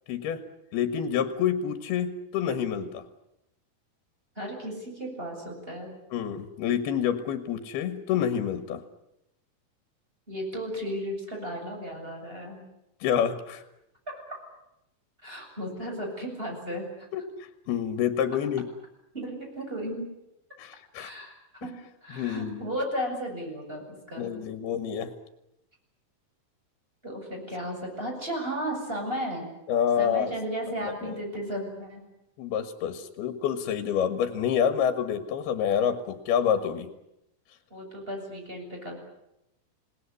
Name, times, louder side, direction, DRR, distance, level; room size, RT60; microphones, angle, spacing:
voice 1, 0.1-0.4 0.7-3.0 6.1-8.8 13.0-13.6 17.1-17.3 17.7-18.7 20.6-21.1 22.1-22.6 24.2-25.1 29.7-30.3 30.8-31.2 32.4-36.9, left 8 dB, 80° left, 9 dB, 3.5 m, -28 dB
voice 2, 4.4-5.9 10.3-12.6 14.3-14.4 15.2-17.1 19.1-20.1 21.0-21.3 21.6-21.7 22.0-24.3 27.0-29.5 30.0-32.0 37.7-39.0, equal, 15° right, 1 dB, 7.6 m, -34 dB
28.0 x 18.5 x 9.8 m, 0.86 s
omnidirectional pair, 4.4 m